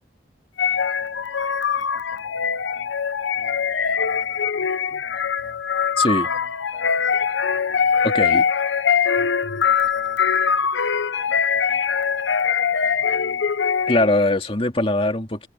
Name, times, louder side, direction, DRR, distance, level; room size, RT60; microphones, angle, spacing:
sound 1, 0.6-14.2, left 6 dB, 80° left, 0.8 m, -22 dB
voice 1, 0.6-1.4 1.7-2.9 3.4-5.6 6.1-8.5 9.6-10.7 11.2-12.0 12.3-13.5, right 1 dB, 15° right, 7.9 m, -53 dB
voice 2, 6.0-6.3 8.0-8.4 13.9-15.5, left 2 dB, 30° left, 2.6 m, -21 dB
head